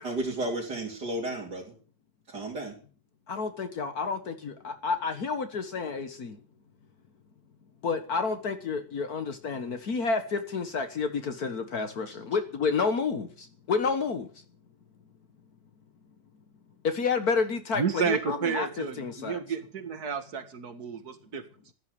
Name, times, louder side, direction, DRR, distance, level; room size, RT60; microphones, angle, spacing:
voice 1, 0.0-1.7 2.3-2.8, right 1 dB, 80° right, -3 dB, 4.2 m, -33 dB
voice 2, 3.3-6.4 7.8-14.3 16.8-19.4, left 5 dB, 65° left, 8 dB, 1.9 m, -30 dB
voice 3, 17.7-21.5, right 6 dB, 65° right, 10 dB, 2.4 m, -31 dB
15.0 x 12.0 x 7.0 m, 0.40 s
omnidirectional pair, 1.8 m